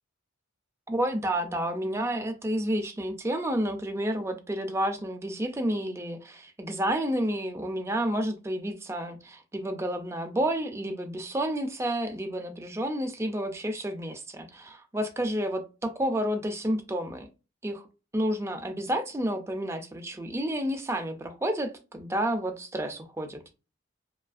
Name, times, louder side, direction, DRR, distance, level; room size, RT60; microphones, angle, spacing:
voice 1, 0.9-17.3 17.6-17.9 18.1-23.4, right 1 dB, 15° right, 0.3 m, -30 dB
2.7 x 2.4 x 2.4 m
head